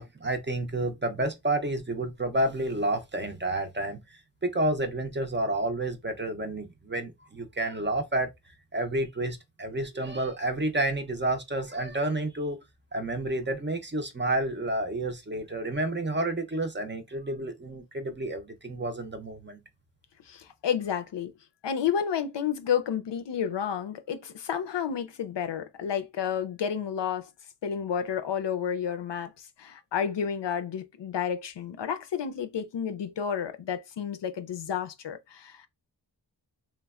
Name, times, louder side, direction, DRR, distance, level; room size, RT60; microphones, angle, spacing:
voice 1, 0.0-4.0 4.4-8.3 8.7-12.6 12.9-19.6, right 1 dB, 25° right, 0.5 m, -30 dB
voice 2, 20.3-21.3 21.6-27.3 27.6-35.7, left 8 dB, 70° left, 0.5 m, -31 dB
3.2 x 2.1 x 2.3 m
wide cardioid pair, 60°, 44 cm